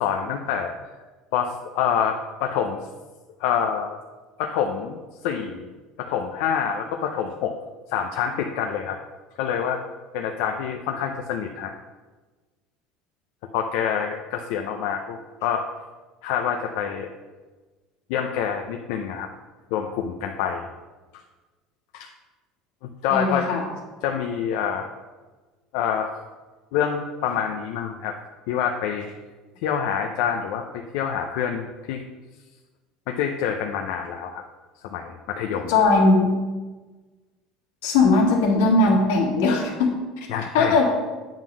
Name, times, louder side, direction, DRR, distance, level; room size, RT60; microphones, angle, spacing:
voice 1, 0.0-0.7 1.3-2.8 3.4-3.9 4.4-5.0 5.2-5.7 6.0-7.6 7.9-9.0 9.4-9.8 10.1-11.7 13.5-15.7 16.2-17.1 18.1-19.3 19.7-20.6 21.9-22.1 22.8-23.5 24.0-24.9 25.7-26.1 26.7-28.1 28.5-29.1 29.6-32.0 33.1-34.4 34.8-35.7 40.3-40.8, left 8 dB, 70° left, 3 dB, 0.6 m, -26 dB
voice 2, 23.1-23.6 35.7-36.4 37.8-40.3 40.5-40.9, left 3 dB, 85° left, 0 dB, 1.9 m, -19 dB
8.8 x 3.8 x 6.1 m, 1.3 s
cardioid pair, 160°, 0 cm